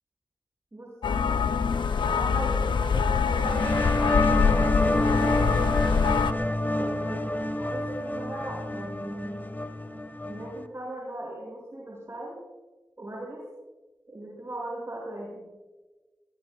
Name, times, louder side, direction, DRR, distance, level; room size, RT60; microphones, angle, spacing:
voice 1, 0.7-1.5 1.8-5.9 6.8-9.5 9.9-12.4 13.0-13.4 14.1-15.4, right 1 dB, 35° right, -4 dB, 6.9 m, -39 dB
sound 1, 1.0-6.3, left 6 dB, 80° left, 0.7 m, -24 dB
sound 2, 3.3-10.7, left 1 dB, 25° left, 1.7 m, -28 dB
28.0 x 20.5 x 2.4 m, 1.2 s
cardioid pair, 50°, 8 cm